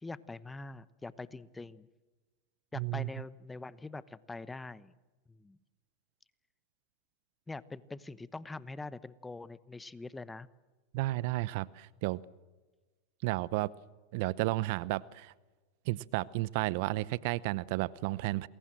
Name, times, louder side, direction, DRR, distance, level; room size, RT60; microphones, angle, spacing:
voice 1, 0.0-1.9 2.7-4.9 5.3-5.6 7.5-10.5, left 3 dB, 10° left, 17 dB, 1.0 m, -44 dB
voice 2, 2.8-3.1 10.9-12.2 13.2-13.7 14.1-15.3 15.9-18.5, right 19 dB, 60° right, 20 dB, 0.8 m, -32 dB
28.5 x 21.5 x 7.6 m, 1.2 s
hypercardioid pair, 105°, 0 cm